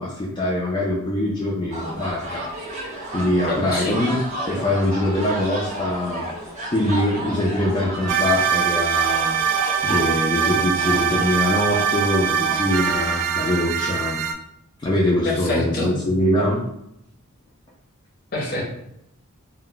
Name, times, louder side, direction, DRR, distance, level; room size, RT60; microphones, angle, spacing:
voice 1, 0.0-2.8 3.1-4.2 4.5-6.3 6.7-9.4 9.8-14.2 14.8-16.6, left 1 dB, 20° left, -6 dB, 0.3 m, -23 dB
sound 1, 1.7-13.2, right 1 dB, 35° right, 0.6 m, -33 dB
voice 2, 3.4-4.0 15.2-16.0 18.3-18.6, left 2 dB, 45° left, -1 dB, 0.7 m, -26 dB
sound 2, 8.1-14.3, right 7 dB, 85° right, 0.3 m, -22 dB
2.1 x 2.1 x 3.7 m, 0.80 s
head